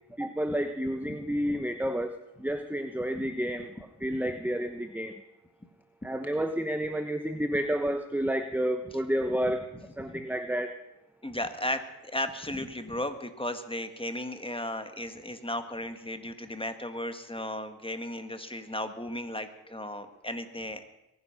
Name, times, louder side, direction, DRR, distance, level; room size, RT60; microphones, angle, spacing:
voice 1, 0.2-2.1 2.4-3.7 4.0-5.1 6.0-9.6 10.0-10.7, equal, 5° right, 8 dB, 1.0 m, -30 dB
voice 2, 1.0-1.6 3.1-3.3 4.2-4.3 9.4-9.5 10.0-10.2 11.2-20.8, left 1 dB, 15° left, 8 dB, 1.9 m, -35 dB
22.0 x 10.0 x 6.0 m, 0.89 s
cardioid pair, 45°, 41 cm